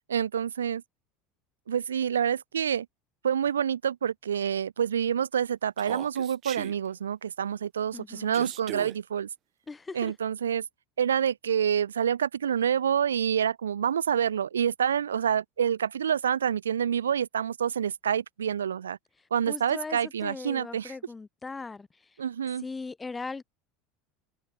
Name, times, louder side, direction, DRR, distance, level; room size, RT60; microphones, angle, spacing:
voice 1, 0.1-0.8 1.7-2.9 3.2-9.3 9.9-10.6 11.0-19.0 19.3-21.0 22.2-22.6, right 8 dB, 90° right, 0.5 m, -27 dB
Human voice, 5.8-6.7 8.3-9.0, right 13 dB, 50° right, 1.4 m, -39 dB
voice 2, 7.9-8.5 9.7-10.1 19.5-21.9 22.6-23.4, left 4 dB, 20° left, 1.1 m, -39 dB
hypercardioid pair, 80°, 0 cm